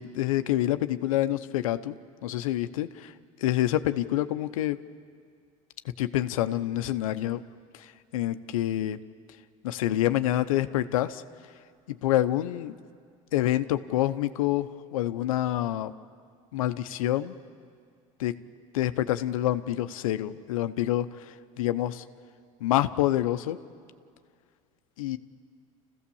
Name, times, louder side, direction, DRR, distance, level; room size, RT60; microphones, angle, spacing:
voice 1, 0.0-3.1 3.4-4.8 6.0-7.4 7.7-9.0 9.6-11.2 11.9-12.7 13.3-15.9 16.5-17.4 18.2-18.4 18.7-22.0 22.6-23.6 25.0-25.2, left 13 dB, 90° left, 11 dB, 0.8 m, -27 dB
29.0 x 15.5 x 7.1 m, 2.2 s
supercardioid pair, 95°, 17 cm